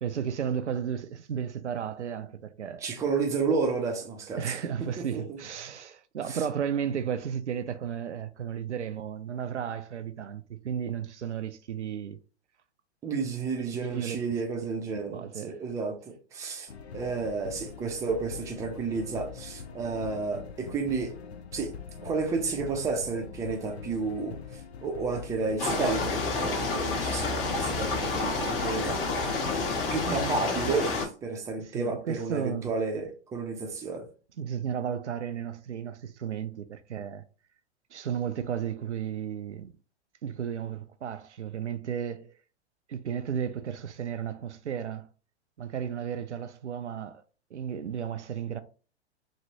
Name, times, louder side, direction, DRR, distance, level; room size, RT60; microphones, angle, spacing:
voice 1, 0.0-2.9 4.4-12.2 13.7-14.2 15.1-15.6 30.1-30.4 31.7-32.7 34.4-37.2 37.9-39.7 40.2-42.4 42.9-45.1 45.6-47.2 47.5-48.6, right 8 dB, 85° right, 0.5 m, -34 dB
voice 2, 2.8-4.4 4.8-5.4 6.3-6.4 13.0-21.1 21.5-21.7 22.0-29.3 29.9-34.1, right 4 dB, 10° right, 0.5 m, -31 dB
sound 1, 16.7-30.1, left 6 dB, 70° left, 0.6 m, -43 dB
sound 2, 25.6-31.0, left 3 dB, 55° left, 1.3 m, -29 dB
3.1 x 2.8 x 2.7 m
figure-of-eight pair, 110°, 34 cm